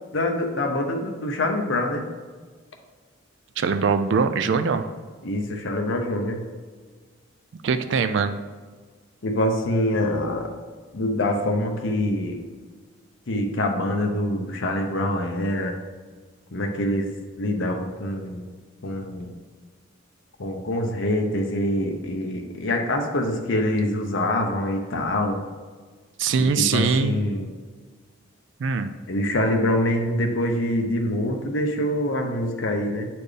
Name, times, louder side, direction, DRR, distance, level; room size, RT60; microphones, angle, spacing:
voice 1, 0.1-2.1 5.2-6.4 9.2-10.5 10.9-12.4 13.3-15.7 16.5-17.1 17.4-18.4 18.8-19.3 20.4-25.4 26.4-27.5 29.1-33.1, left 1 dB, 65° left, 2 dB, 0.7 m, -25 dB
voice 2, 3.6-4.9 7.6-8.4 26.2-27.2 28.6-28.9, right 5 dB, 60° right, 9 dB, 0.3 m, -22 dB
8.4 x 4.3 x 3.3 m, 1.5 s
head